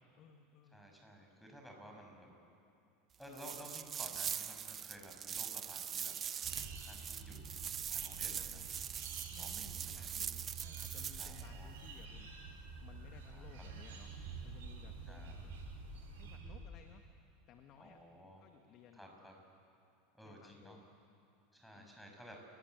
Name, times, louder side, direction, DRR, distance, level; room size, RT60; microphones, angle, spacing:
voice 1, 0.2-0.8 8.2-8.7 9.3-14.2 14.4-15.5 16.1-17.0 17.5-18.0 18.4-19.4 20.2-20.9 21.7-22.0, left 7 dB, 45° left, 6 dB, 1.9 m, -59 dB
voice 2, 0.7-2.3 3.2-6.1 6.6-7.4 7.9-8.6 9.4-10.2 11.2-11.7 13.3-13.6 15.1-15.4 17.8-18.5 18.9-19.3 20.1-20.8 21.5-22.4, equal, ahead, 2 dB, 7.0 m, -55 dB
sound 1, 3.3-11.4, right 8 dB, 35° right, 1.0 m, -42 dB
sound 2, 6.1-16.4, right 5 dB, 70° right, 6.2 m, -57 dB
sound 3, 6.4-16.7, right 4 dB, 55° right, 7.0 m, -49 dB
30.0 x 20.5 x 8.2 m, 2.6 s
hypercardioid pair, 80°, 0 cm